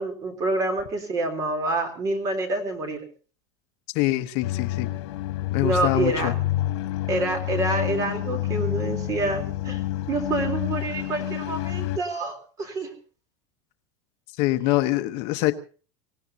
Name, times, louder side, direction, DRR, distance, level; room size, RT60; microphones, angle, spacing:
voice 1, 0.0-3.0 5.6-6.4 7.1-9.8 10.1-12.9, right 2 dB, 25° right, 7 dB, 3.5 m, -27 dB
voice 2, 3.9-4.9 5.5-6.3 14.4-15.5, left 17 dB, 50° left, 9 dB, 1.0 m, -24 dB
sound 1, 4.4-12.0, left 14 dB, 85° left, 1.6 m, -28 dB
25.5 x 17.5 x 2.8 m, 0.39 s
supercardioid pair, 175°, 14 cm